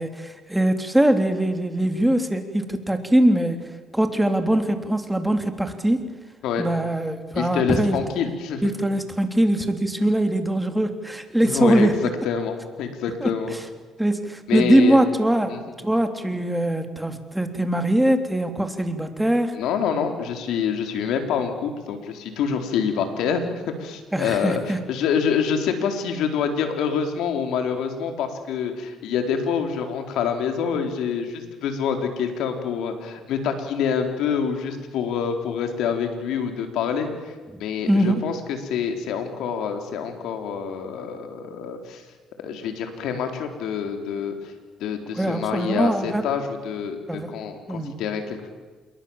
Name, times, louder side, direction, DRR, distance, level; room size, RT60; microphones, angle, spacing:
voice 1, 0.0-3.6 3.9-6.0 6.6-8.0 8.6-11.9 13.2-13.6 14.0-15.5 15.8-19.5 24.1-24.8 37.9-38.2 45.1-46.2 47.1-47.3 47.7-47.9, right 1 dB, 5° right, 6 dB, 3.3 m, -22 dB
voice 2, 7.4-8.6 11.4-11.9 12.2-13.5 14.5-15.0 15.5-15.6 19.5-37.3 37.6-42.0 42.4-44.5 44.8-48.5, left 7 dB, 80° left, 5 dB, 4.1 m, -26 dB
27.5 x 22.5 x 7.4 m, 1.4 s
cardioid pair, 85°, 0 cm